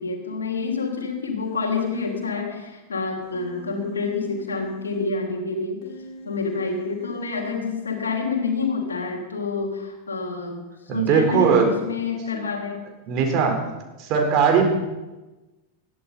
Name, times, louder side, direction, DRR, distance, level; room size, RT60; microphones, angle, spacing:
voice 1, 0.0-5.8 6.2-10.6 10.9-12.9, left 4 dB, 75° left, 2 dB, 3.2 m, -28 dB
Human voice, 1.4-2.2 3.2-5.0 5.8-7.5, left 2 dB, 40° left, 5.4 m, -45 dB
voice 2, 10.9-11.7 13.1-13.6 14.0-14.7, right 6 dB, 40° right, 2 dB, 4.3 m, -19 dB
20.5 x 14.5 x 4.3 m, 1.1 s
figure-of-eight pair, 90°, 0 cm